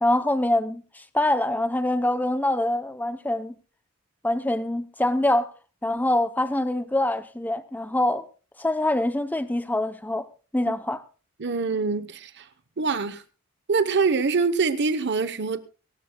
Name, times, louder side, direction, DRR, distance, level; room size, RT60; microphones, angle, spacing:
voice 1, 0.0-3.5 4.2-5.5 5.8-8.3 8.6-10.2 10.5-11.0, left 1 dB, 10° left, 0.7 m, -24 dB
voice 2, 11.4-12.5 12.8-13.2 13.7-15.6, right 4 dB, 50° right, 0.9 m, -24 dB
24.0 x 13.0 x 2.3 m
head